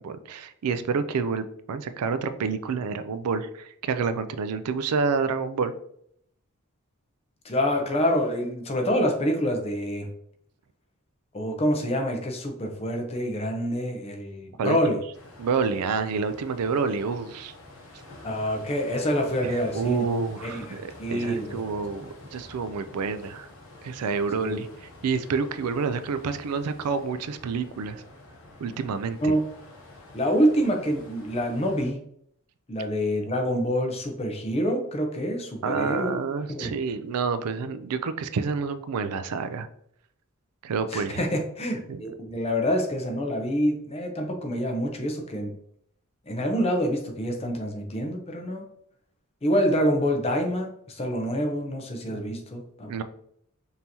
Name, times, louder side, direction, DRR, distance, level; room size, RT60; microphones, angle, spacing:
voice 1, 0.0-5.7 14.6-15.0 15.4-17.5 19.4-23.5 23.8-24.7 25.0-28.0 28.6-29.3 35.6-39.7 40.6-41.2 41.9-42.0 52.1-52.4 52.9-53.0, right 5 dB, 90° right, 11 dB, 0.4 m, -28 dB
voice 2, 7.4-10.1 11.3-15.0 18.2-20.0 20.4-21.9 24.4-24.5 29.2-29.4 30.1-32.0 32.7-36.1 36.5-36.7 40.9-45.5 46.3-48.7 49.4-52.9, equal, 25° left, 3 dB, 0.6 m, -26 dB
sound 1, 15.1-31.9, left 2 dB, 65° left, 1.0 m, -48 dB
5.4 x 2.7 x 2.9 m, 0.69 s
head